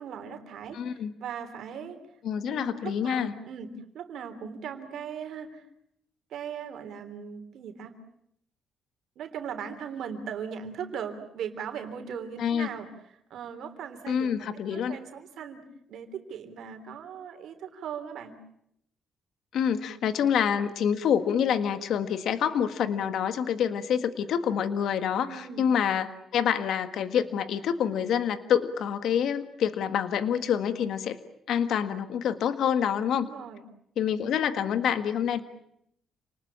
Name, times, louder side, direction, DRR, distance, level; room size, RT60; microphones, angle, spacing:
voice 1, 0.0-2.0 2.4-5.6 6.3-7.9 9.1-12.9 13.3-18.4 25.3-25.7 33.1-33.6, right 7 dB, 75° right, 7 dB, 3.3 m, -39 dB
voice 2, 0.7-1.1 2.2-3.3 12.4-12.7 14.1-15.0 19.5-31.2 31.5-33.3 34.0-35.4, left 8 dB, 75° left, 11 dB, 1.6 m, -27 dB
28.5 x 20.0 x 8.7 m, 0.74 s
cardioid pair, 90°, 0 cm